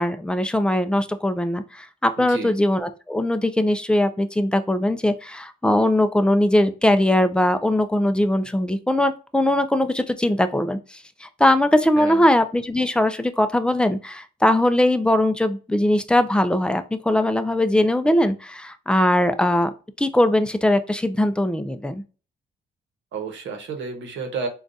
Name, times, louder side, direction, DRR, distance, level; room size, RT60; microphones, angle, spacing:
voice 1, 0.0-19.7 20.0-22.0, left 1 dB, 5° left, 10 dB, 0.3 m, -20 dB
voice 2, 2.2-2.5 12.0-12.2 23.1-24.5, right 4 dB, 70° right, 5 dB, 0.9 m, -31 dB
3.8 x 2.3 x 2.4 m, 0.35 s
cardioid pair, 90°, 20 cm